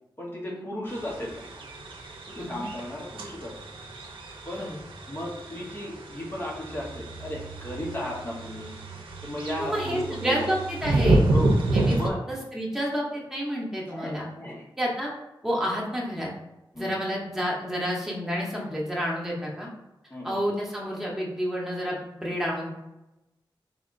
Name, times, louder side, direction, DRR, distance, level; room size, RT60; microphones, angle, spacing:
voice 1, 0.2-1.6 2.3-3.6 4.4-4.7 5.1-8.8 9.2-10.5 11.3-11.6 11.9-12.2 13.9-14.7 16.7-17.0 20.1-20.4, left 1 dB, 25° left, -4 dB, 1.1 m, -35 dB
sound 1, 0.9-12.1, right 2 dB, 85° right, 0.6 m, -29 dB
voice 2, 9.6-11.3 11.7-12.0 12.3-14.2 14.8-15.1 15.4-16.3 16.7-19.7 20.2-22.7, equal, 5° right, -4 dB, 1.2 m, -29 dB
3.7 x 3.4 x 2.6 m, 0.94 s
wide cardioid pair, 70°, 9 cm